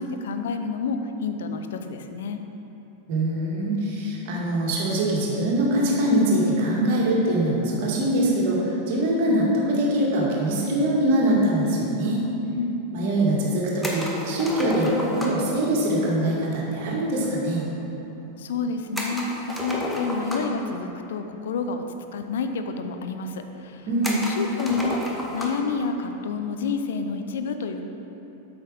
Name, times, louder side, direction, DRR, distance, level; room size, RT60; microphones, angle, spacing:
voice 1, 0.0-2.4 12.6-12.8 18.4-21.8 22.1-27.8, left 4 dB, 60° left, 7 dB, 0.6 m, -29 dB
voice 2, 3.1-12.2 12.9-17.6 23.9-24.2, right 1 dB, 50° right, -4 dB, 2.0 m, -23 dB
sound 1, 13.8-15.5 19.0-20.7 21.7-21.8 22.1-22.2 23.0-23.1 24.0-25.7, left 1 dB, 5° left, 1.1 m, -32 dB
8.4 x 5.9 x 5.0 m, 3.0 s
figure-of-eight pair, 90°, 0 cm